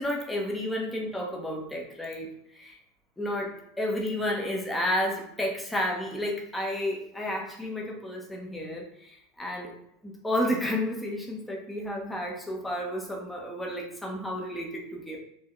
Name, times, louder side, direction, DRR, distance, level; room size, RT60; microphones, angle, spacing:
voice 1, 0.0-2.8 3.2-9.7 10.0-15.2, left 1 dB, 5° left, -1 dB, 0.8 m, -31 dB
4.5 x 2.8 x 3.1 m, 0.77 s
supercardioid pair, 140°, 0 cm